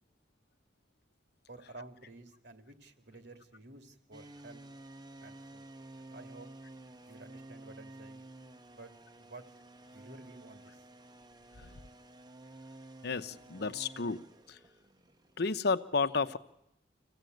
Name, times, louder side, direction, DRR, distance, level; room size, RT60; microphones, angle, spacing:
voice 1, 1.5-4.6 5.2-5.7 6.0-6.5 7.1-8.2 8.7-8.9 9.2-9.4 9.9-10.8, right 2 dB, 65° right, 9 dB, 2.3 m, -52 dB
sound 1, 4.1-15.6, right 2 dB, 25° right, 0.8 m, -52 dB
voice 2, 13.0-14.6 15.4-16.4, left 4 dB, 65° left, 12 dB, 0.8 m, -32 dB
25.5 x 16.0 x 9.2 m, 0.87 s
head